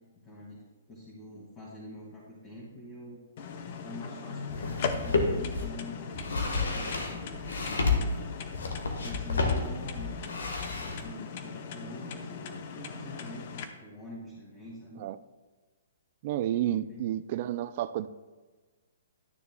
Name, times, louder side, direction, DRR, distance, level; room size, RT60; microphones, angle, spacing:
voice 1, 0.2-0.6 0.9-3.2 3.8-6.2 6.7-8.5 9.0-10.4 10.7-15.0 16.7-17.0, left 1 dB, 25° left, -6 dB, 2.1 m, -45 dB
sound 1, 3.4-13.6, left 6 dB, 50° left, 0.8 m, -39 dB
sound 2, 4.5-5.6 6.1-11.0, left 3 dB, 80° left, 1.4 m, -30 dB
voice 2, 16.2-18.1, right 12 dB, 45° right, 15 dB, 0.4 m, -30 dB
12.0 x 6.9 x 2.3 m, 1.3 s
hypercardioid pair, 140°, 0 cm